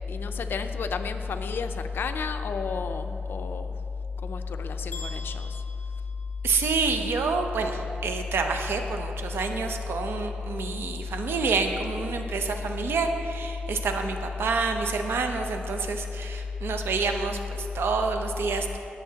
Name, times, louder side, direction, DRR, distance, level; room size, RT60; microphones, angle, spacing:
voice 1, 0.1-3.8 4.2-5.6, left 5 dB, 70° left, 8 dB, 0.5 m, -31 dB
sound 1, 4.9-6.9, left 1 dB, 50° left, 2.5 m, -44 dB
voice 2, 6.4-18.8, right 4 dB, 85° right, 5 dB, 0.7 m, -28 dB
18.0 x 7.0 x 2.9 m, 2.8 s
wide cardioid pair, 105°, 4 cm